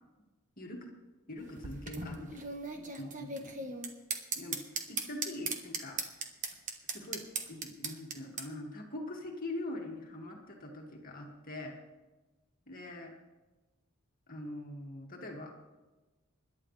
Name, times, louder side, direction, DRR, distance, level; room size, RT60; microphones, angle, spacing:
voice 1, 0.6-0.9 1.3-2.5 2.7-3.7 4.4-6.0 6.9-11.8 12.7-13.1 14.3-15.5, left 1 dB, 40° left, 0 dB, 2.1 m, -43 dB
sound 1, 1.4-8.5, right 4 dB, 35° right, 1.3 m, -38 dB
25.5 x 11.5 x 3.3 m, 1.2 s
head